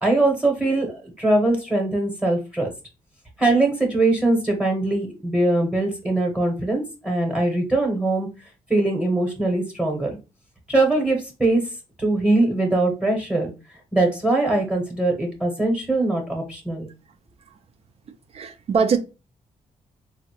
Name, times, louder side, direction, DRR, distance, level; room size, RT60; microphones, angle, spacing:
voice 1, 0.0-2.7 3.4-8.3 8.7-10.2 10.7-11.6 12.0-13.5 13.9-16.9, right 2 dB, 10° right, 0.8 m, -21 dB
voice 2, 18.3-19.0, right 5 dB, 55° right, 0.4 m, -21 dB
3.7 x 2.0 x 2.9 m
cardioid pair, 115°, 12 cm